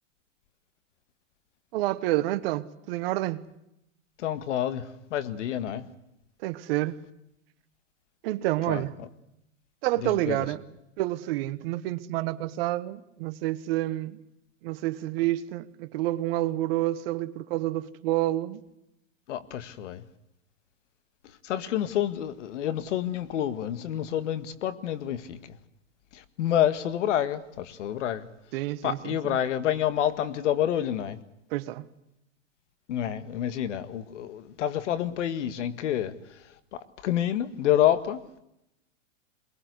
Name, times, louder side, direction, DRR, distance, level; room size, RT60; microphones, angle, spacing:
voice 1, 1.7-3.5 6.4-7.0 8.2-8.9 9.8-10.6 11.0-14.2 14.6-18.6 28.5-29.4 31.5-31.9, right 16 dB, 50° right, 1.3 m, -29 dB
voice 2, 4.2-5.9 8.7-9.1 10.0-10.5 19.3-20.0 21.4-25.6 26.1-28.3 28.8-31.2 32.9-36.2 36.7-38.4, left 11 dB, 70° left, 1.9 m, -28 dB
23.0 x 20.5 x 8.0 m
hypercardioid pair, 140°, 38 cm